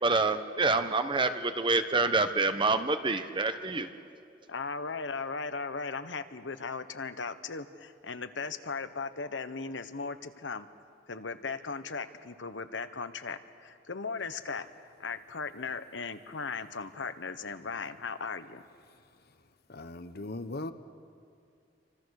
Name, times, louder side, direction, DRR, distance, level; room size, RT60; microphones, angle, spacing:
voice 1, 0.0-3.9, right 3 dB, 25° right, 9 dB, 1.1 m, -27 dB
voice 2, 4.5-10.7 11.1-14.7 15.0-18.6, left 4 dB, 85° left, 10 dB, 1.2 m, -37 dB
voice 3, 19.7-20.7, left 2 dB, 60° left, 10 dB, 1.3 m, -38 dB
29.5 x 25.5 x 6.6 m, 2.6 s
head